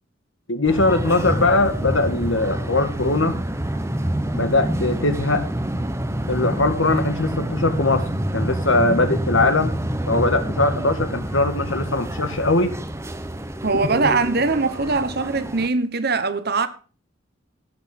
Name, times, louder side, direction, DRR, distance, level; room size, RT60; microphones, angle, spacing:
voice 1, 0.5-3.4 4.3-5.4 6.3-8.1 8.3-9.8 10.1-12.8 14.0-14.1, left 2 dB, 80° left, 1.8 m, -21 dB
sound 1, 0.6-15.7, right 1 dB, 15° right, 0.9 m, -27 dB
voice 2, 13.6-16.7, right 3 dB, 55° right, 1.2 m, -21 dB
16.5 x 6.5 x 6.0 m
head